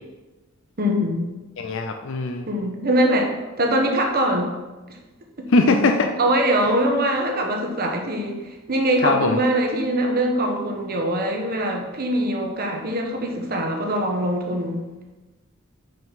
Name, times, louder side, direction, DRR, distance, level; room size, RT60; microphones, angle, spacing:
voice 1, 0.8-1.3 2.5-3.3 3.6-4.5 4.9-5.0 6.2-14.8, right 1 dB, 45° right, 2 dB, 1.2 m, -22 dB
voice 2, 1.6-2.5 5.5-6.1 9.0-9.4, left 3 dB, 65° left, 5 dB, 0.5 m, -20 dB
5.5 x 5.2 x 5.7 m, 1.2 s
head